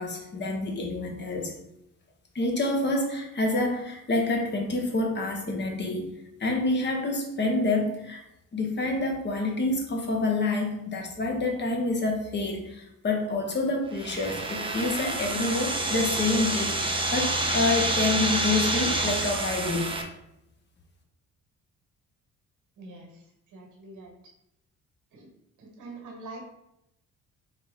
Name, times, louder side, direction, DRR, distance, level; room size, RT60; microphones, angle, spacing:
voice 1, 0.0-1.5 2.3-6.1 6.4-8.2 8.5-16.8 17.1-19.9, left 2 dB, 35° left, 1 dB, 1.1 m, -27 dB
sound 1, 13.9-20.0, right 2 dB, 15° right, 0.6 m, -28 dB
voice 2, 22.8-23.2 23.5-24.1 25.1-25.3 25.6-26.4, right 2 dB, 80° right, 1 dB, 1.3 m, -44 dB
3.9 x 3.0 x 3.7 m, 0.83 s
cardioid pair, 90°, 30 cm